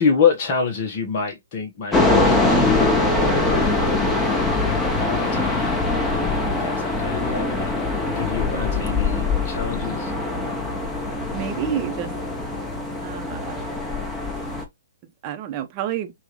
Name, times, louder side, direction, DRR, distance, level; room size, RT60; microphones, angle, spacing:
voice 1, 0.0-3.8 5.0-5.8 6.4-7.7 8.2-10.1, left 6 dB, 40° left, 1.1 m, -26 dB
sound 1, 1.9-14.6, left 3 dB, 10° left, 1.1 m, -22 dB
voice 2, 11.3-12.1 13.0-13.6 15.2-16.1, right 10 dB, 35° right, 0.9 m, -29 dB
6.0 x 2.5 x 3.1 m
figure-of-eight pair, 125°, 0 cm